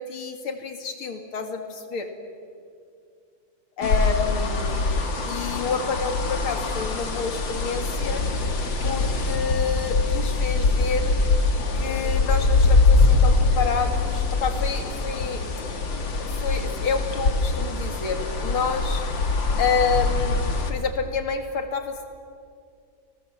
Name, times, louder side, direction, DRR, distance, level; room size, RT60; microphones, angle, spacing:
voice 1, 0.0-2.1 3.8-4.8 5.2-8.3 8.8-11.2 11.7-15.5 16.2-19.1 19.6-20.4 20.7-22.1, left 5 dB, 85° left, 6 dB, 3.0 m, -28 dB
sound 1, 3.8-20.7, left 3 dB, 65° left, 2.7 m, -23 dB
28.5 x 19.5 x 7.5 m, 2.3 s
omnidirectional pair, 2.3 m